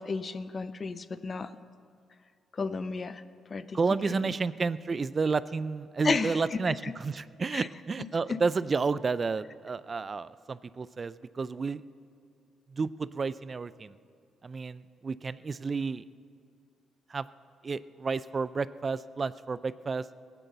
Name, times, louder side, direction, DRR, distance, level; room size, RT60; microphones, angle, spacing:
voice 1, 0.0-1.5 2.6-3.2 3.5-3.8 4.1-4.3 6.0-6.4 6.7-6.9 7.5-7.7 8.3-8.4, left 4 dB, 45° left, 14 dB, 0.7 m, -32 dB
voice 2, 3.7-11.8 12.7-13.9 14.4-16.0 17.1-17.3 17.6-20.0, right 4 dB, 40° right, 16 dB, 0.4 m, -31 dB
17.5 x 9.2 x 6.8 m, 2.3 s
supercardioid pair, 55°, 0 cm